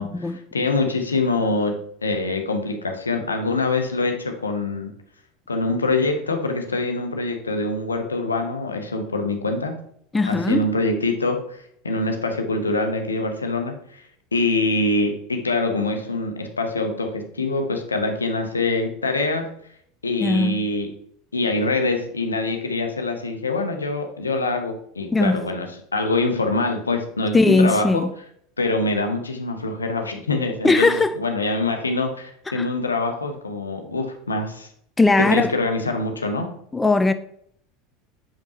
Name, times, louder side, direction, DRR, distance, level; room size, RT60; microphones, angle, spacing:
voice 1, 0.0-4.9 5.5-9.7 10.3-14.0 14.3-19.5 20.0-20.9 21.3-25.7 25.9-28.0 28.6-34.7 35.2-36.5, left 2 dB, 80° left, 0.9 m, -24 dB
voice 2, 10.1-10.7 20.2-20.6 25.1-25.4 27.3-28.1 30.6-31.2 32.5-32.7 35.0-35.5 36.7-37.1, left 3 dB, 15° left, 0.4 m, -19 dB
7.1 x 5.2 x 3.0 m
figure-of-eight pair, 75°, 0 cm